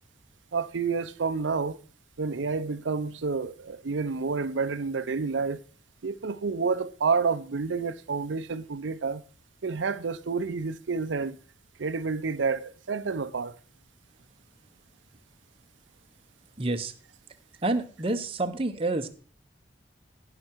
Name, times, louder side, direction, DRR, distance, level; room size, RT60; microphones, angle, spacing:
voice 1, 0.5-1.8 2.2-5.6 6.0-9.2 9.6-11.4 11.8-13.5, right 4 dB, 90° right, 0.6 m, -29 dB
voice 2, 16.6-16.9 17.6-19.1, right 2 dB, 30° right, 0.8 m, -28 dB
16.5 x 5.9 x 4.6 m
head